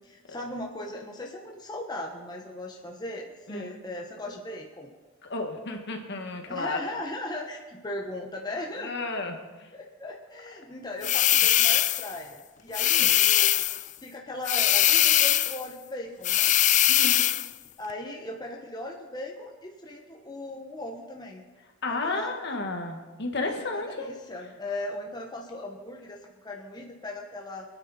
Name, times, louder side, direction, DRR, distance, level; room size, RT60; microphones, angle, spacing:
voice 1, 0.0-4.9 6.5-9.1 9.7-13.7 14.0-16.5 17.8-21.4 21.9-22.6 23.4-27.6, left 1 dB, 20° left, 0 dB, 1.3 m, -38 dB
voice 2, 5.3-6.8 8.8-9.4 12.8-13.1 16.9-17.2 21.8-23.9, left 3 dB, 60° left, 3 dB, 1.9 m, -32 dB
sound 1, 11.0-12.1 12.7-13.8 14.5-15.6 16.2-17.5, left 13 dB, 40° left, 0.4 m, -21 dB
25.0 x 9.8 x 4.3 m, 1.3 s
head